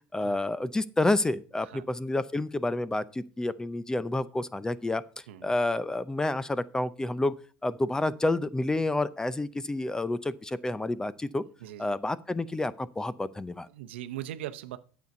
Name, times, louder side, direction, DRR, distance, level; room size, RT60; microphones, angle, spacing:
voice 1, 0.1-5.0 5.4-7.3 7.6-11.4 11.8-13.7, left 2 dB, 10° left, 0.6 m, -29 dB
voice 2, 11.6-12.0 13.7-14.8, right 12 dB, 90° right, 0.7 m, -40 dB
9.3 x 7.1 x 5.4 m
supercardioid pair, 100°, 6 cm